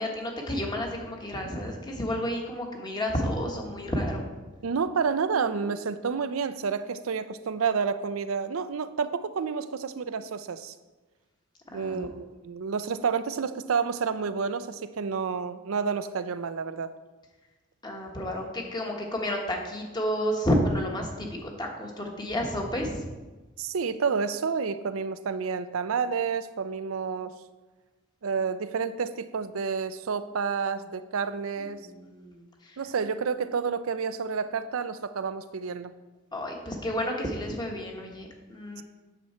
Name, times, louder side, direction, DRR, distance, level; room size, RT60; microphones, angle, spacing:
voice 1, 0.0-4.2 5.6-5.7 11.7-12.1 17.8-22.9 31.8-32.4 36.3-38.8, equal, 20° left, 1 dB, 1.4 m, -31 dB
voice 2, 4.6-10.7 11.7-16.9 23.6-27.3 28.2-31.8 32.8-35.9 38.8-38.9, right 5 dB, 85° right, 12 dB, 0.5 m, -29 dB
9.2 x 7.0 x 4.4 m, 1.2 s
head